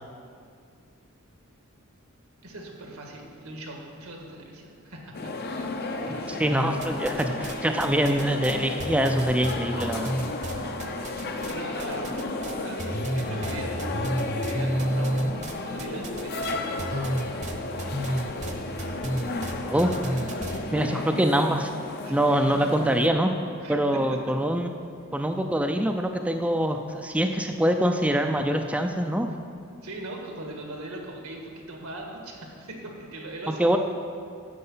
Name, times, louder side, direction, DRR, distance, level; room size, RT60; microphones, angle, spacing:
voice 1, 2.4-6.5 7.2-7.3 10.6-13.8 14.5-17.1 22.0-22.4 23.6-24.2 25.1-25.3 29.8-33.8, right 1 dB, 85° right, 0 dB, 1.8 m, -41 dB
sound 1, 5.1-23.1, left 2 dB, 50° left, 0.7 m, -33 dB
voice 2, 6.3-10.2 19.7-19.9 20.7-21.7 22.1-23.3 23.7-24.7 25.1-29.3 33.5-33.8, right 1 dB, 5° right, 5 dB, 0.4 m, -24 dB
sound 2, 6.8-7.5 7.8-11.5 11.8-12.5 12.8-20.6, right 1 dB, 35° right, 0.8 m, -30 dB
9.7 x 7.5 x 5.5 m, 2.3 s
head